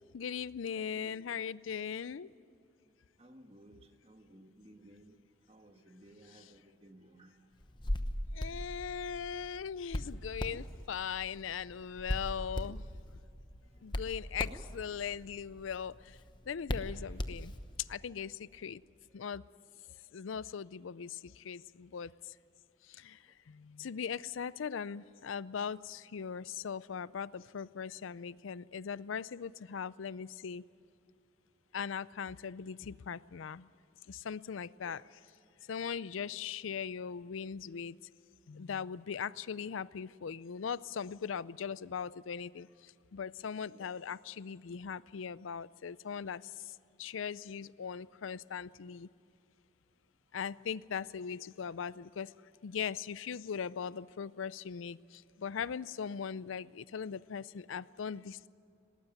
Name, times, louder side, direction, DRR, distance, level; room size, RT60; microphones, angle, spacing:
voice 1, 0.1-2.3 8.3-12.9 13.8-16.2 16.5-17.5 17.8-18.8 19.1-19.4 20.1-22.4 22.8-30.6 31.7-33.7 34.1-35.0 35.7-38.0 38.5-49.1 50.3-52.3 52.6-58.5, left 7 dB, 90° left, 0.5 m, -40 dB
voice 2, 0.7-1.4 3.2-5.2 5.5-7.4 16.8-17.3 18.6-18.7 19.8-20.0 34.8-35.0 36.2-36.4 43.7-44.0, right 1 dB, 30° right, 1.5 m, -58 dB
Hands, 7.6-17.9, left 1 dB, 25° left, 0.9 m, -40 dB
19.5 x 18.5 x 9.2 m
head